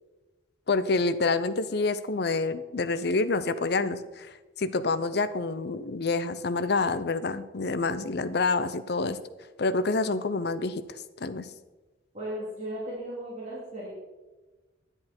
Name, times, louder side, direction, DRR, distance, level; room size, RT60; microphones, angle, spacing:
voice 1, 0.7-4.3 4.6-9.2 9.6-10.8 11.2-11.5, left 3 dB, 60° left, 13 dB, 0.6 m, -27 dB
voice 2, 12.1-13.9, right 1 dB, 40° right, -8 dB, 2.8 m, -36 dB
10.5 x 10.0 x 4.4 m, 1.2 s
head